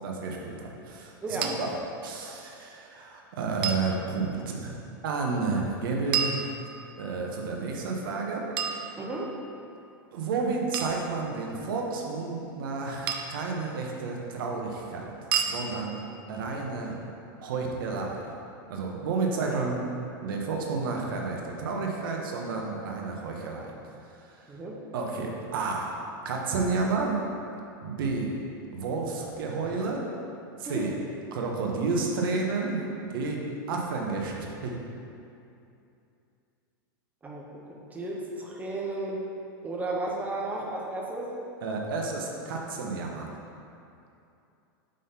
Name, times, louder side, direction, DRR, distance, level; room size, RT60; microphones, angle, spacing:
voice 1, 0.0-1.7 2.0-4.7 5.0-6.6 7.0-8.4 10.1-15.1 15.5-16.0 16.3-17.0 17.4-18.2 18.7-19.8 20.2-23.7 24.2-24.4 24.9-25.9 26.2-27.2 27.8-28.3 28.7-30.0 30.6-30.9 31.3-33.4 33.7-34.8 41.6-43.3, right 4 dB, 75° right, 0 dB, 1.0 m, -31 dB
voice 2, 1.2-1.5 9.0-9.2 19.4-19.7 24.5-24.8 30.6-30.9 37.2-37.4 37.7-39.2 39.6-41.3, right 2 dB, 15° right, -3 dB, 0.9 m, -34 dB
sound 1, 1.4-1.5 3.6-3.9 6.1-7.0 8.6-9.5 10.7-11.0 13.1-13.5 15.3-15.6, right 7 dB, 90° right, 0.5 m, -30 dB
5.0 x 3.9 x 5.7 m, 2.6 s
supercardioid pair, 140°, 12 cm